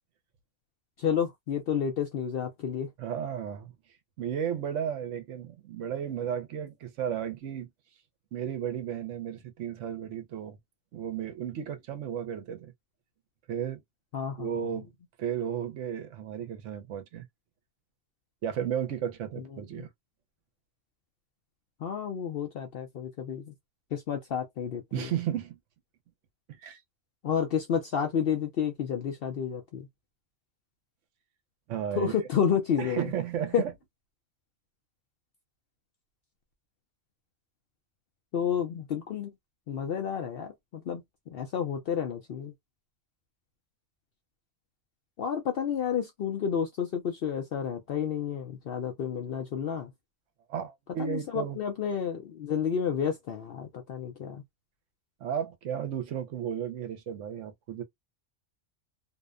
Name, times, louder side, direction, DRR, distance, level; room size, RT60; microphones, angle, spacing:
voice 1, 1.0-2.9 14.1-14.5 19.8-19.9 21.8-23.5 23.9-25.1 27.2-29.9 31.9-33.0 33.5-33.6 38.3-39.3 39.7-42.5 45.2-49.9 51.0-54.4, left 8 dB, 65° left, 0.6 m, -30 dB
voice 2, 3.0-3.7 4.2-7.7 8.3-10.6 10.9-12.7 13.5-13.8 14.4-14.8 15.2-17.3 18.4-19.9 24.9-25.6 26.5-26.8 31.7-32.1 32.8-33.7 50.5-51.6 55.2-57.8, right 9 dB, 70° right, 0.9 m, -34 dB
2.7 x 2.0 x 2.4 m
omnidirectional pair, 1.4 m